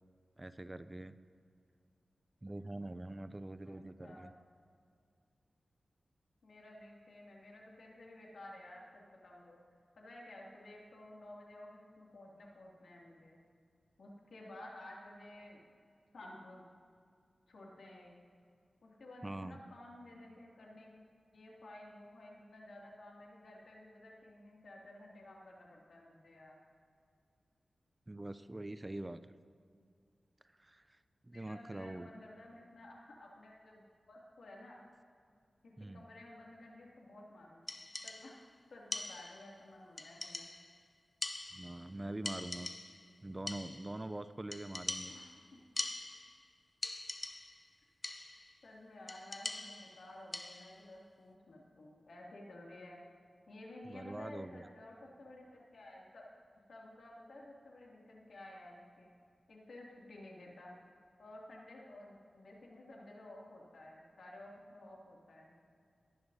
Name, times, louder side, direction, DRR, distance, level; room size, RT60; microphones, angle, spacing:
voice 1, 0.4-1.2 2.4-4.3 19.2-19.6 28.1-29.3 30.6-31.0 31.2-32.1 35.8-36.0 41.5-42.7 43.2-45.1 53.9-54.7, right 1 dB, 20° right, 13 dB, 0.4 m, -44 dB
voice 2, 3.7-4.3 6.4-9.6 10.0-13.4 14.0-15.6 16.1-16.6 17.5-18.1 18.8-21.0 21.3-26.6 31.3-33.8 34.1-34.8 35.6-37.6 38.0-38.4 38.7-40.5 45.1-45.3 45.5-45.6 48.6-53.0 53.5-56.3 56.7-59.1 59.5-60.8 61.2-65.5, left 1 dB, 80° left, -3 dB, 2.4 m, -53 dB
sound 1, 37.7-38.5 38.9-39.6 40.0-40.8 41.2-42.0 42.3-43.1 43.5-44.0 44.5-46.5 46.8-47.7 48.0-48.5 49.1-50.8, left 2 dB, 30° left, 0.6 m, -43 dB
19.0 x 11.5 x 2.7 m, 2.3 s
wide cardioid pair, 85°, 0 cm